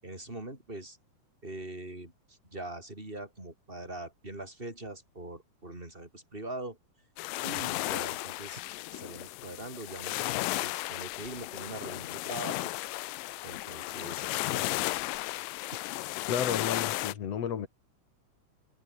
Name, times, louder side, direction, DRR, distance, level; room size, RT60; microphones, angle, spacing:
voice 1, 0.0-1.0 1.4-6.8 7.4-8.6 8.9-12.7 13.4-15.1, right 2 dB, 15° right, 6.2 m, -42 dB
sound 1, 7.2-17.1, left 20 dB, 85° left, 2.3 m, -34 dB
voice 2, 16.3-17.7, left 8 dB, 55° left, 2.7 m, -32 dB
omnidirectional pair, 3.9 m